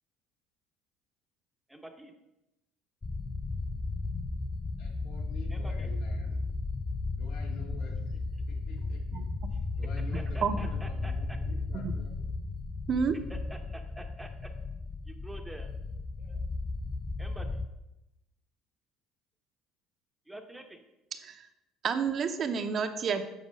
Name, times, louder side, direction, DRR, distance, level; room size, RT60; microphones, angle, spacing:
voice 1, 1.7-2.1 5.5-5.9 10.1-11.4 13.3-14.5 15.1-15.7 16.2-16.4 17.2-17.6 20.3-20.8 23.1-23.2, right 1 dB, 5° right, 5 dB, 0.8 m, -47 dB
sound 1, 3.0-17.7, left 3 dB, 15° left, 0.4 m, -35 dB
voice 2, 4.8-6.4 7.1-8.2 8.5-9.2 9.8-12.2, left 2 dB, 80° left, 0 dB, 2.2 m, -50 dB
voice 3, 21.1-21.4 21.8-23.2, right 6 dB, 40° right, 7 dB, 0.8 m, -29 dB
7.5 x 4.3 x 6.3 m, 0.92 s
cardioid pair, 115°, 0 cm